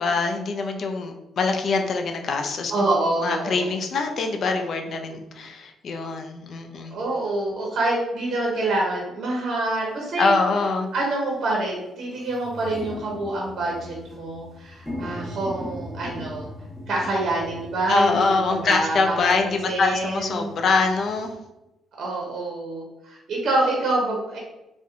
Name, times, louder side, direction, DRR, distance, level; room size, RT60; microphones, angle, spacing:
voice 1, 0.0-2.7 3.2-7.0 10.2-10.9 17.9-21.3, left 4 dB, 55° left, 5 dB, 0.3 m, -24 dB
voice 2, 2.7-3.6 6.9-10.4 10.9-16.5 16.9-18.3 18.6-19.2 19.4-20.5 22.0-24.4, right 2 dB, 60° right, -2 dB, 0.6 m, -26 dB
sound 1, 9.8-9.9 10.6-10.9 11.3-11.4 11.6-21.3, left 1 dB, 5° left, 1.1 m, -40 dB
2.7 x 2.0 x 2.4 m, 0.92 s
cardioid pair, 90°, 0 cm